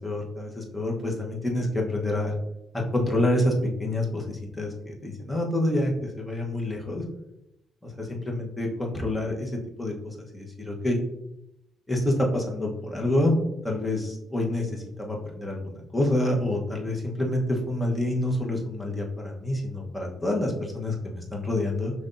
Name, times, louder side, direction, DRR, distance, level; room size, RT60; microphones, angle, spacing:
voice 1, 0.0-2.3 2.7-3.5 3.8-7.0 7.8-9.5 9.8-11.0 11.9-13.3 13.6-21.9, left 1 dB, 10° left, -1 dB, 1.0 m, -27 dB
5.3 x 3.3 x 2.6 m, 0.86 s
cardioid pair, 90°, 0 cm